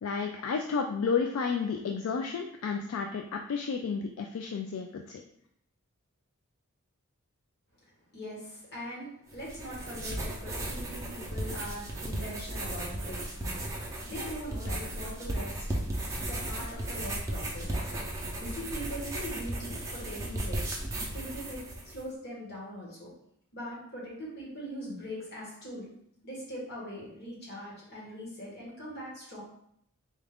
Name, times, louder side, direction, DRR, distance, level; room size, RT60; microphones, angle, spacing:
voice 1, 0.0-5.2, left 5 dB, 70° left, 3 dB, 0.3 m, -31 dB
voice 2, 8.1-13.8 14.0-15.7 16.2-21.6 21.8-23.1 23.5-25.9 26.2-29.4, equal, 45° left, -5 dB, 1.4 m, -41 dB
sound 1, 9.3-22.0, right 1 dB, 15° right, 0.5 m, -35 dB
4.2 x 2.4 x 3.4 m, 0.71 s
head